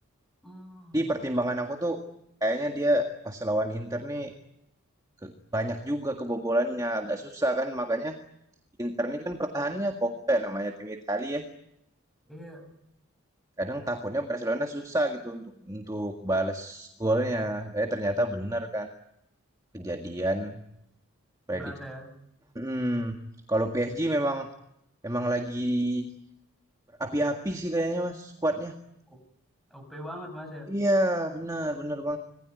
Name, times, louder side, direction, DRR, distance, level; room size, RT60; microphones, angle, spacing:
voice 1, 0.4-1.1 12.3-12.7 21.5-22.1 29.1-29.2 29.7-30.7, equal, ahead, 5 dB, 7.0 m, -42 dB
voice 2, 0.9-2.0 2.4-4.4 5.2-8.1 8.8-11.4 13.6-18.9 19.7-20.6 21.5-21.7 22.6-23.2 23.5-24.5 25.0-26.1 27.0-28.8 30.7-32.2, right 1 dB, 15° right, 4 dB, 1.8 m, -28 dB
26.5 x 20.0 x 9.6 m, 0.79 s
head